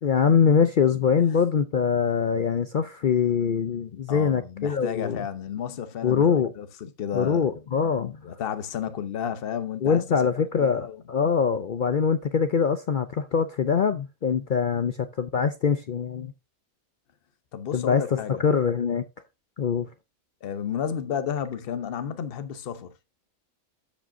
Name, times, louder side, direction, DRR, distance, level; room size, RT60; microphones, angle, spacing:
voice 1, 0.0-5.2 6.0-6.5 7.1-8.2 9.8-16.3 17.7-19.0 19.6-19.9, left 6 dB, 65° left, 0.5 m, -23 dB
voice 2, 4.1-6.3 6.6-7.5 8.2-10.3 10.6-11.0 17.5-18.4 20.4-22.9, left 8 dB, 50° left, 0.9 m, -32 dB
13.5 x 5.0 x 2.6 m
omnidirectional pair, 1.5 m